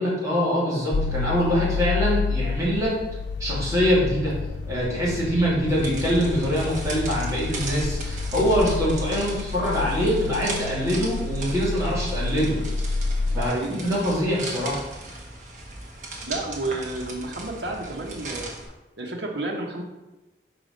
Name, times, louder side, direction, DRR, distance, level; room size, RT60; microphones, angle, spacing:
voice 1, 0.0-2.9 3.4-4.3 4.7-12.6 13.3-13.5 13.8-14.8, equal, 20° right, -7 dB, 2.3 m, -24 dB
Low Ambient Hum, 0.9-13.5, left 4 dB, 80° left, 0.3 m, -29 dB
sound 1, 5.7-18.6, right 2 dB, 45° right, 1.1 m, -38 dB
voice 2, 13.3-13.8 16.2-18.5 19.0-19.8, right 2 dB, 80° right, 0 dB, 1.1 m, -31 dB
4.9 x 4.9 x 5.2 m, 1.0 s
head